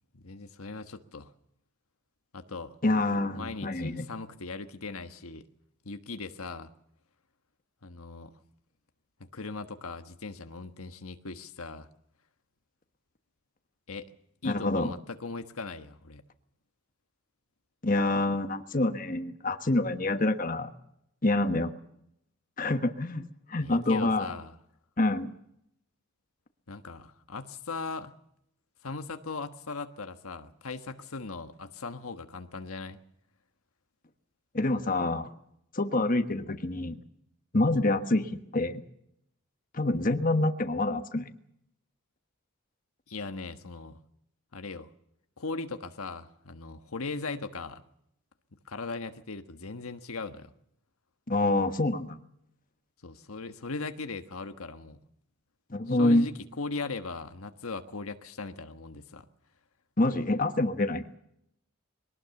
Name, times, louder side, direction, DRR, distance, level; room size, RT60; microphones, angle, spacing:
voice 1, 0.1-1.3 2.3-2.8 3.3-5.5 5.8-6.7 7.8-8.3 9.2-11.9 13.9-14.1 14.4-16.2 23.6-24.6 26.7-28.1 28.8-33.0 43.1-44.0 44.5-44.9 45.4-47.8 48.6-50.5 53.0-55.0 55.9-59.2, left 3 dB, 80° left, 8 dB, 1.4 m, -39 dB
voice 2, 2.8-4.1 14.4-14.9 17.8-20.7 21.2-21.7 22.6-24.3 25.0-25.3 34.5-35.3 35.7-37.0 37.5-38.8 39.7-41.3 51.3-52.2 55.7-56.3 60.0-61.1, left 2 dB, 40° left, 8 dB, 1.4 m, -27 dB
22.5 x 18.5 x 7.1 m, 0.75 s
head